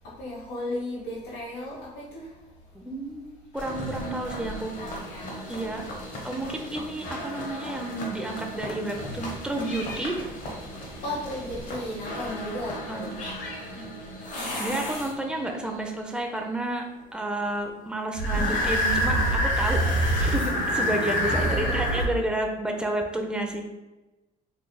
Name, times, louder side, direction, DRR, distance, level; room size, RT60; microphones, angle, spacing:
voice 1, 0.0-2.5 4.7-6.0 11.0-13.2 21.2-21.9, left 1 dB, 90° left, -8 dB, 1.2 m, -35 dB
voice 2, 2.7-4.8 5.5-5.8 6.2-10.2 12.7-13.1 13.8-13.9 14.6-16.8 17.1-19.8 20.2-23.6, right 1 dB, 5° right, 2 dB, 0.5 m, -31 dB
sound 1, 3.6-15.5 18.2-22.0, equal, 50° left, 1.1 m, -29 dB
3.8 x 3.3 x 2.2 m, 1.1 s
cardioid pair, 110°, 17 cm